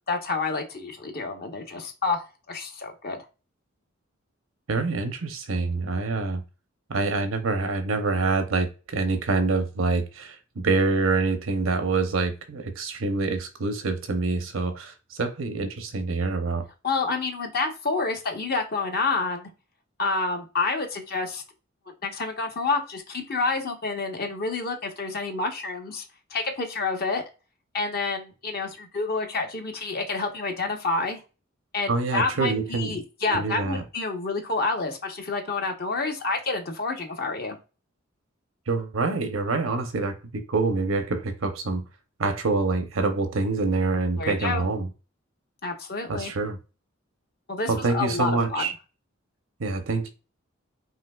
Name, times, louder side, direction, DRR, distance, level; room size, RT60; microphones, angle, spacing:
voice 1, 0.1-3.2 16.8-19.5 20.0-21.4 22.0-26.0 26.3-27.2 27.7-31.2 31.7-37.6 44.2-44.6 45.6-46.3 47.5-48.7, left 3 dB, 50° left, 0.9 m, -28 dB
voice 2, 4.7-6.4 6.9-16.7 31.9-33.0 33.3-33.8 38.7-41.8 42.2-44.9 46.1-46.6 47.7-48.7 49.6-50.1, right 3 dB, 90° right, 0.7 m, -26 dB
5.9 x 2.8 x 2.3 m
head